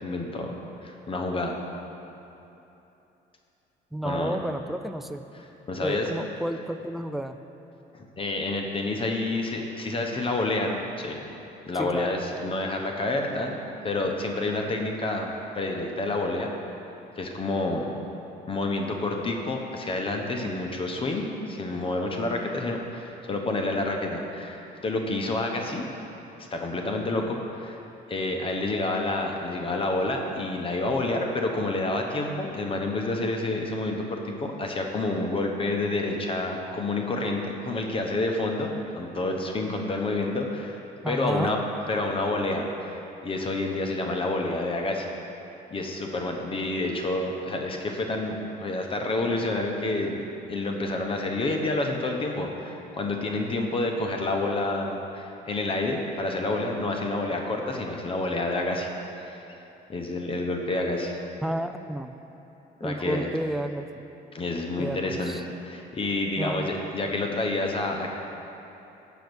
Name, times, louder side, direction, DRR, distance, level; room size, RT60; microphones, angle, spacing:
voice 1, 0.0-0.5 0.8-1.5 4.0-4.4 5.7-6.0 7.9-11.2 11.7-13.6 13.8-16.5 17.2-17.9 18.5-25.9 26.5-27.8 28.1-40.8 41.1-41.6 41.9-45.1 45.7-50.2 50.5-58.9 59.2-59.4 59.9-61.2 62.8-63.3 64.3-65.4 65.6-68.1, left 2 dB, 30° left, 2 dB, 0.9 m, -28 dB
voice 2, 3.9-5.3 5.8-7.4 11.8-12.1 41.0-41.6 61.4-62.2 62.8-64.0 64.8-65.4 66.4-66.7, right 1 dB, ahead, 9 dB, 0.3 m, -31 dB
7.0 x 6.3 x 6.2 m, 3.0 s
cardioid pair, 110°, 18 cm